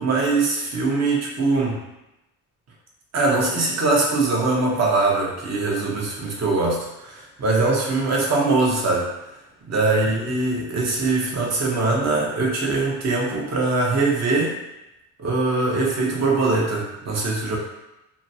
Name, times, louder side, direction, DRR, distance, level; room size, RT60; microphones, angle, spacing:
voice 1, 0.0-1.8 3.1-9.1 9.7-14.6 15.2-17.6, right 3 dB, 40° right, -2 dB, 0.9 m, -22 dB
3.0 x 2.2 x 2.7 m, 0.93 s
supercardioid pair, 70°, 39 cm